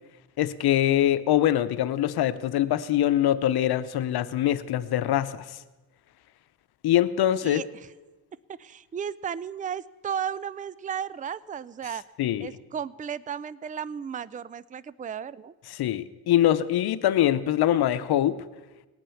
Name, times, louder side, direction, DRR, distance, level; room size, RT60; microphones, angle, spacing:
voice 1, 0.4-5.5 6.8-7.6 12.2-12.5 15.7-18.4, left 12 dB, 90° left, 13 dB, 0.8 m, -23 dB
voice 2, 7.4-7.9 8.6-12.0 12.4-15.5, right 8 dB, 20° right, 20 dB, 0.4 m, -34 dB
19.5 x 9.1 x 7.0 m, 1.2 s
cardioid pair, 85°, 37 cm